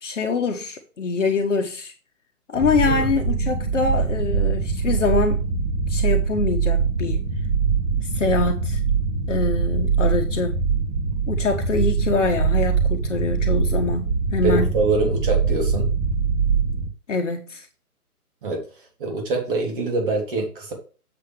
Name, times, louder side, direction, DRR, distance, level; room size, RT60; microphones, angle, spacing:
voice 1, 0.0-1.9 2.5-5.5 5.9-7.2 8.1-8.8 9.3-10.7 11.3-14.7 17.1-17.7, left 4 dB, 50° left, 1.4 m, -24 dB
sound 1, 2.5-16.9, right 5 dB, 15° right, 1.9 m, -23 dB
voice 2, 14.4-15.9 18.4-18.7 19.0-20.7, right 3 dB, 35° right, 3.5 m, -24 dB
7.7 x 7.3 x 3.5 m
figure-of-eight pair, 145°, 46 cm